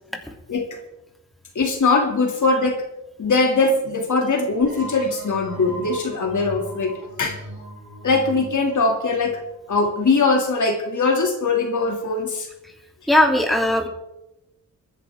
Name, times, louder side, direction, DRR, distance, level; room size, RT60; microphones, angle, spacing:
voice 1, 0.5-0.8 1.5-2.8 3.2-7.4 8.0-9.4 9.7-12.5, left 3 dB, 60° left, 2 dB, 2.5 m, -21 dB
sound 1, 4.6-10.1, equal, 90° right, 5.8 m, -39 dB
voice 2, 13.1-13.9, left 1 dB, ahead, 1 dB, 2.8 m, -18 dB
23.5 x 10.5 x 3.6 m, 0.92 s
cardioid pair, 80°, 34 cm